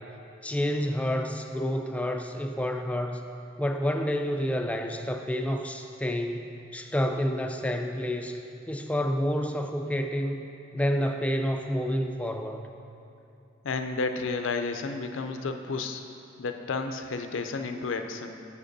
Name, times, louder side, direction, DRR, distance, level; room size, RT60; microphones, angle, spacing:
voice 1, 0.4-3.2 3.6-10.4 10.7-12.7, equal, 5° left, 5 dB, 0.4 m, -29 dB
voice 2, 13.6-16.0 16.4-18.4, left 4 dB, 65° left, 6 dB, 0.5 m, -31 dB
6.8 x 5.1 x 6.6 m, 2.7 s
head